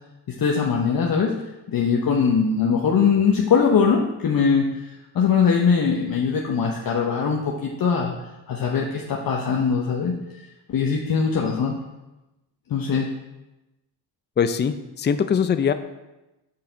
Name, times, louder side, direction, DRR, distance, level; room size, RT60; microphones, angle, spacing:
voice 1, 0.3-1.3 1.7-4.7 5.1-8.1 8.5-10.2 10.7-11.7 12.7-13.1, left 6 dB, 50° left, 0 dB, 1.0 m, -21 dB
voice 2, 14.4-15.7, left 7 dB, 25° left, 10 dB, 0.5 m, -22 dB
6.4 x 5.6 x 4.0 m, 1.0 s
supercardioid pair, 60°, 45 cm